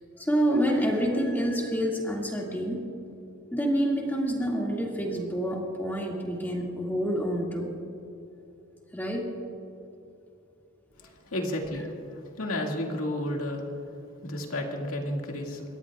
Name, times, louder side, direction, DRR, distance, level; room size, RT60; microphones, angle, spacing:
voice 1, 0.2-2.9 3.5-7.8 8.9-9.4, equal, 10° left, -2 dB, 2.1 m, -27 dB
voice 2, 11.3-13.6 14.2-15.6, left 1 dB, 80° left, 1 dB, 2.1 m, -32 dB
28.5 x 14.0 x 2.4 m, 2.9 s
head